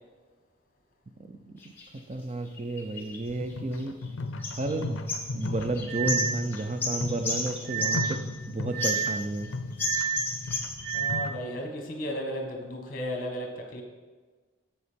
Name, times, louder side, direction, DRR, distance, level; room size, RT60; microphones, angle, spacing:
sound 1, 1.6-1.9 2.6-4.1 4.4-4.8 5.1-8.4 8.8-9.5 9.8-11.0, left 3 dB, 10° left, 1.2 m, -33 dB
voice 1, 1.9-4.0 4.6-5.1 5.3-9.5, right 2 dB, 30° right, 7 dB, 0.4 m, -32 dB
sound 2, 3.3-11.4, left 3 dB, 65° left, 0.5 m, -36 dB
sound 3, 4.4-4.5 5.9-6.4 7.6-8.2 8.7-9.2 9.8-10.3 10.8-11.3, right 8 dB, 45° right, 2.6 m, -30 dB
voice 2, 10.9-13.8, equal, 40° left, 2 dB, 1.4 m, -34 dB
7.6 x 6.8 x 5.2 m, 1.4 s
head